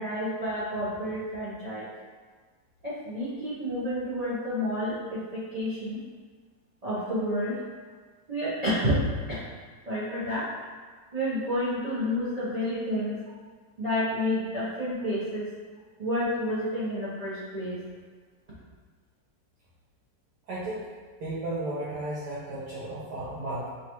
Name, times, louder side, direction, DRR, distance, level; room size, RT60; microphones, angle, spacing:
voice 1, 0.0-1.9 2.8-6.0 6.8-7.6 8.3-9.5 9.9-10.5 11.1-13.2 13.8-15.5 16.0-17.8, equal, 40° right, -10 dB, 0.5 m, -30 dB
voice 2, 20.5-20.9 21.2-23.7, right 1 dB, 70° right, -9 dB, 1.2 m, -34 dB
5.6 x 2.4 x 3.0 m, 1.5 s
omnidirectional pair, 2.0 m